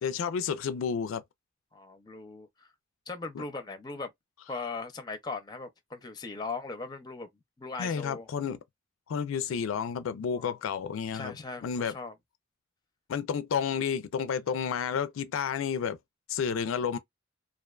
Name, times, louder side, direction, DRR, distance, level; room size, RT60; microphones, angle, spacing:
voice 1, 0.0-1.2 3.3-3.4 7.8-8.6 9.1-11.3 11.6-11.9 13.1-16.0 16.3-17.0, left 7 dB, 80° left, 0.3 m, -31 dB
voice 2, 1.7-2.7 3.1-4.1 4.5-7.3 7.6-8.3 10.4-10.5 11.1-12.1, left 4 dB, 20° left, 0.5 m, -39 dB
2.4 x 2.2 x 2.3 m
head